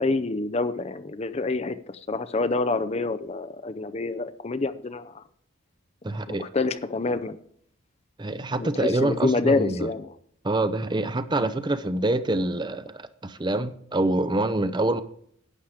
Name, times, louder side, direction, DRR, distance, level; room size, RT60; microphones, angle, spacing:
voice 1, 0.0-5.2 6.3-7.4 8.6-10.1, left 3 dB, 30° left, 12 dB, 0.5 m, -27 dB
voice 2, 6.0-6.4 8.2-9.9 10.4-15.0, right 2 dB, 20° right, 12 dB, 0.6 m, -26 dB
11.5 x 8.7 x 4.9 m, 0.65 s
head